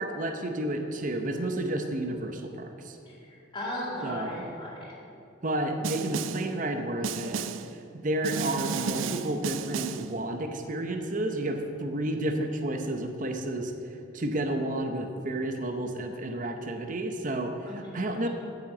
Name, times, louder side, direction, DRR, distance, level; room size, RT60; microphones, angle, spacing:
voice 1, 0.0-3.0 4.0-4.5 5.4-7.5 7.7-13.7 14.1-18.3, right 1 dB, 45° right, 5 dB, 0.8 m, -31 dB
voice 2, 3.1-4.9 17.7-18.3, left 1 dB, 25° left, -6 dB, 2.0 m, -37 dB
Snare drum, 5.8-6.5 7.0-7.7 8.2-10.1, right 7 dB, 90° right, 0.4 m, -33 dB
9.0 x 6.1 x 7.7 m, 2.7 s
head